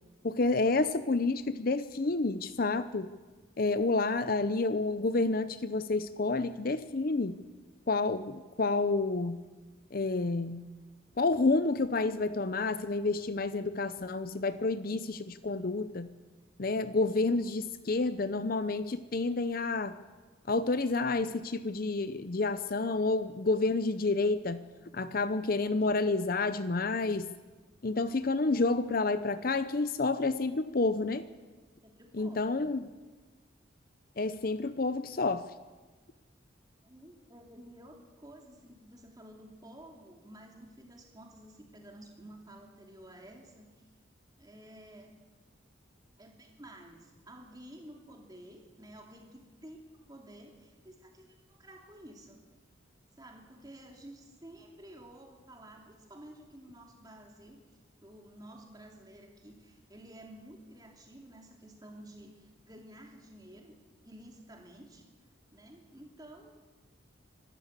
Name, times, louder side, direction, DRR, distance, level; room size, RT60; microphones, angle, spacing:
voice 1, 0.2-3.1 3.6-7.4 7.9-9.4 9.9-10.6 11.2-16.1 16.6-20.0 20.5-24.6 24.9-27.3 27.8-31.3 32.1-32.9 34.2-35.5, left 3 dB, 45° left, 13 dB, 0.6 m, -29 dB
voice 2, 31.8-32.7 36.8-43.7 44.4-45.2 46.2-52.5 53.1-63.8 64.0-65.1 65.5-66.6, right 1 dB, 20° right, 2 dB, 2.9 m, -52 dB
25.5 x 13.0 x 8.2 m, 1.3 s
head